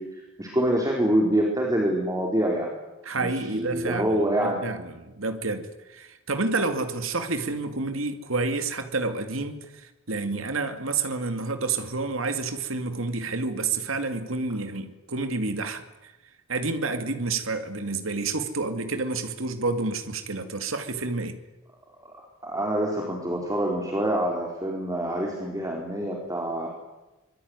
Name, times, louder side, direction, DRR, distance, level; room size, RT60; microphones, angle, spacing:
voice 1, 0.0-2.7 3.2-4.6 22.0-22.1 22.4-26.7, right 1 dB, 15° right, 0 dB, 4.4 m, -26 dB
voice 2, 3.0-16.1 16.5-21.4, right 3 dB, 70° right, 8 dB, 2.4 m, -29 dB
25.0 x 22.5 x 9.7 m, 1.0 s
head